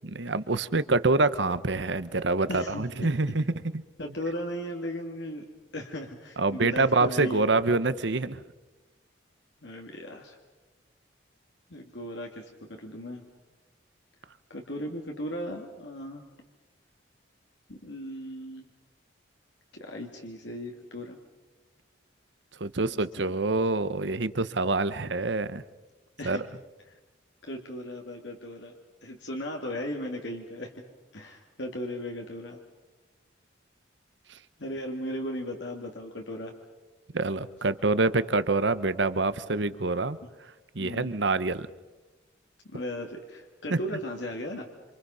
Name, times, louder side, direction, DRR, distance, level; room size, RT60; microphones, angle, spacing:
voice 1, 0.0-3.4 6.4-8.4 22.6-25.6 26.2-26.5 37.1-40.2 40.7-41.7 43.7-43.8, right 3 dB, 70° right, 14 dB, 1.0 m, -26 dB
voice 2, 2.5-2.8 4.0-5.5 5.7-7.5 9.6-10.4 11.7-13.2 14.5-16.2 17.7-18.7 19.7-21.2 22.8-23.4 26.2-26.4 26.9-27.0 27.4-28.7 29.0-30.8 31.1-32.6 34.6-36.5 40.2-40.3 40.8-41.1 42.7-44.7, equal, 70° left, 2 dB, 2.3 m, -37 dB
27.0 x 27.0 x 5.6 m, 1.1 s
head